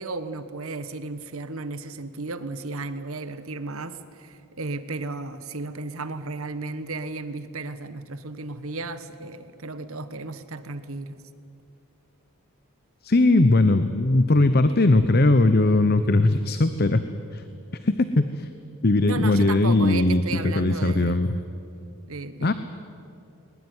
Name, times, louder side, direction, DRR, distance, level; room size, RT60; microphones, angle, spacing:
voice 1, 0.0-11.2 19.0-21.2 22.1-22.5, right 3 dB, 75° right, 12 dB, 1.4 m, -34 dB
voice 2, 13.0-17.0 17.3-17.4 17.8-18.5 18.8-21.3 22.4-22.5, left 2 dB, 45° left, 11 dB, 0.8 m, -19 dB
21.0 x 20.5 x 9.6 m, 2.6 s
head